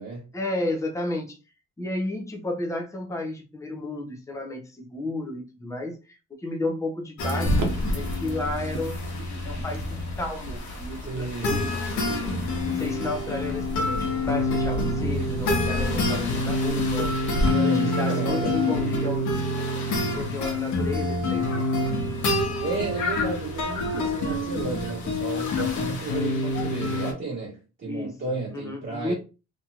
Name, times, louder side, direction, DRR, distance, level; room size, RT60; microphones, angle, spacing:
voice 1, 0.3-1.4 1.8-9.0 9.3-11.8 12.6-17.1 17.6-19.3 20.0-21.7 27.8-28.1 28.5-29.1, left 2 dB, 10° left, 0.7 m, -32 dB
sound 1, 7.2-27.1, left 2 dB, 70° left, 1.1 m, -27 dB
sound 2, 7.5-17.5, equal, 65° right, 0.9 m, -32 dB
voice 2, 11.0-12.4 17.5-18.9 22.6-29.1, right 3 dB, 40° right, 1.4 m, -33 dB
sound 3, 12.4-15.2 15.5-18.0 18.5-18.8 19.0-19.1 19.3-26.9, left 5 dB, 90° left, 1.3 m, -40 dB
3.0 x 2.9 x 2.4 m
cardioid pair, 130°, 30 cm